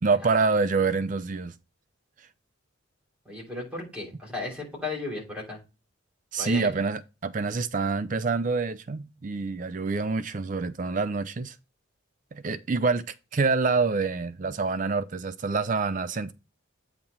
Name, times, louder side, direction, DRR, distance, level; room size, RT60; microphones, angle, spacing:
voice 1, 0.0-1.5 6.3-11.6 12.3-13.0 13.3-16.3, right 4 dB, 40° right, 0.4 m, -26 dB
voice 2, 3.2-5.6 6.4-6.8, left 2 dB, 5° right, 3.2 m, -35 dB
8.5 x 2.9 x 5.3 m
head